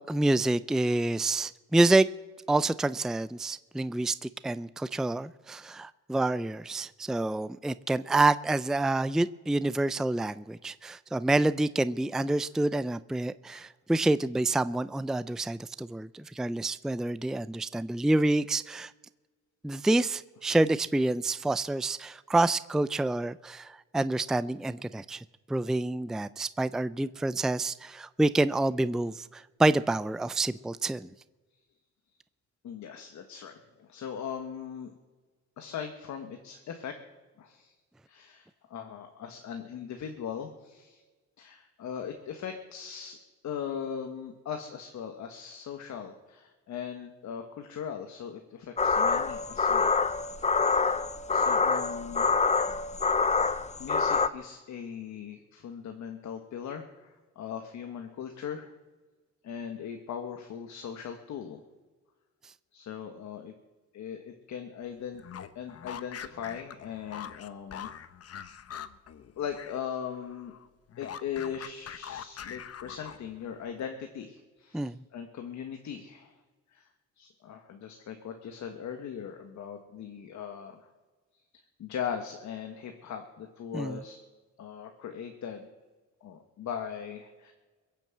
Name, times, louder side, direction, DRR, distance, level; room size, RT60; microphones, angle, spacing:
voice 1, 0.1-2.1 2.5-18.9 19.6-25.2 25.5-31.1 74.7-75.0 83.7-84.0, right 2 dB, ahead, 0.4 m, -27 dB
voice 2, 32.6-34.9 35.6-37.0 37.4-37.7 38.1-41.0 41.4-43.2 43.4-50.0 50.7-50.9 51.3-52.3 53.8-58.7 59.4-61.6 62.7-63.5 63.9-65.2 65.6-68.0 69.4-70.5 71.0-76.4 76.7-76.9 77.2-80.9 81.8-84.2 84.6-85.7 86.2-87.5, left 8 dB, 70° left, 1.7 m, -39 dB
sound 1, 48.8-54.3, left 4 dB, 25° left, 0.8 m, -26 dB
sound 2, 65.1-69.9 70.1-73.4, left 9 dB, 55° left, 1.0 m, -43 dB
22.5 x 7.6 x 7.9 m
cardioid pair, 90°, 30 cm